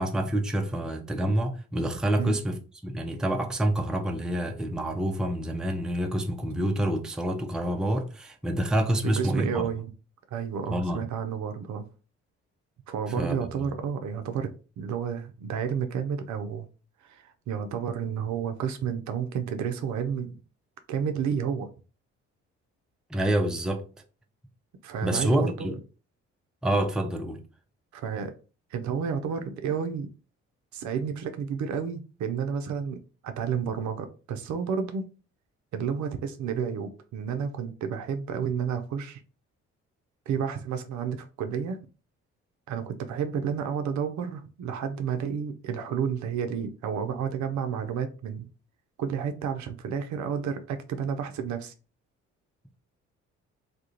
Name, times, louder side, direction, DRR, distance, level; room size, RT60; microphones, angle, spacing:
voice 1, 0.0-2.6 2.8-9.6 10.7-11.0 13.2-13.7 23.1-23.8 25.0-25.7 26.6-27.4, right 1 dB, ahead, 0.5 m, -27 dB
voice 2, 9.0-9.9 10.3-11.8 12.9-16.7 17.0-20.4 20.9-21.7 24.8-25.8 27.9-28.3 28.7-30.1 30.7-35.0 35.7-39.2 40.3-41.8 42.7-48.5 49.0-51.7, right 7 dB, 55° right, 0.5 m, -31 dB
2.3 x 2.2 x 2.8 m
hypercardioid pair, 45°, 35 cm